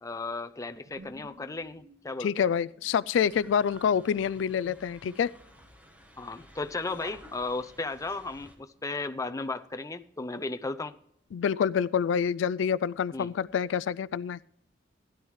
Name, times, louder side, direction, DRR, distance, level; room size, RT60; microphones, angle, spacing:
voice 1, 0.0-2.3 6.2-11.0 13.1-13.3, left 3 dB, 20° left, 0.6 m, -35 dB
sound 1, 0.8-6.0 8.7-9.5 9.7-10.2 12.6-14.0, right 1 dB, 90° right, 1.6 m, -57 dB
voice 2, 2.2-5.3 11.3-14.4, left 7 dB, 90° left, 0.3 m, -27 dB
sound 2, 3.1-8.6, equal, 10° right, 1.6 m, -53 dB
sound 3, 3.1-4.2 5.1-5.3 6.4-6.5, right 10 dB, 65° right, 3.0 m, -60 dB
16.0 x 11.0 x 3.2 m
head